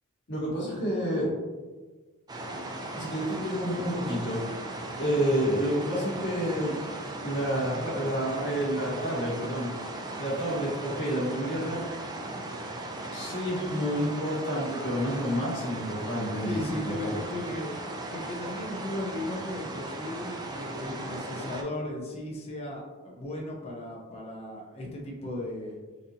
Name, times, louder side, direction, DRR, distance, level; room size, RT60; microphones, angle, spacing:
voice 1, 0.3-1.3 2.9-4.4 5.0-6.8 7.2-9.7 10.2-11.9 13.1-17.2, equal, 55° left, -6 dB, 1.2 m, -29 dB
sound 1, 2.3-21.6, right 2 dB, 20° right, 0.3 m, -37 dB
voice 2, 16.4-17.7 18.1-25.8, left 1 dB, 30° left, -2 dB, 0.6 m, -36 dB
3.9 x 2.6 x 2.7 m, 1.3 s
head